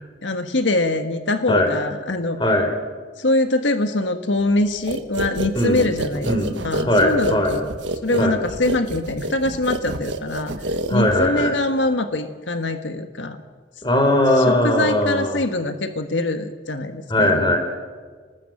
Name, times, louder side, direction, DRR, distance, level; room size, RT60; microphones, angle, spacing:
voice 1, 0.2-2.4 3.2-7.7 8.0-10.5 10.9-13.4 14.4-17.6, left 2 dB, 90° left, 8 dB, 1.5 m, -23 dB
sound 1, 4.9-11.4, right 1 dB, 85° right, 1.5 m, -28 dB
voice 2, 6.2-6.5 6.9-7.5 8.2-8.3 10.9-11.6 13.8-15.4 17.1-17.6, left 1 dB, 25° left, 5 dB, 3.9 m, -19 dB
26.0 x 20.0 x 7.3 m, 1.5 s
head